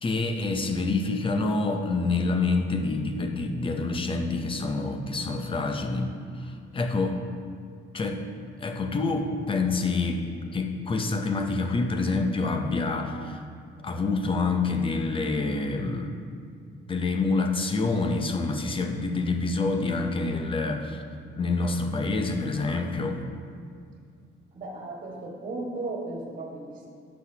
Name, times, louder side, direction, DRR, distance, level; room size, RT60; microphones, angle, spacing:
voice 1, 0.0-7.2 7.9-8.2 8.6-10.2 10.5-13.4 13.8-16.2 16.9-21.0 21.4-23.2, left 3 dB, 25° left, 4 dB, 0.7 m, -27 dB
voice 2, 24.5-26.9, right 2 dB, 45° right, -1 dB, 1.7 m, -35 dB
11.5 x 6.4 x 2.9 m, 2.3 s
cardioid pair, 125°, 19 cm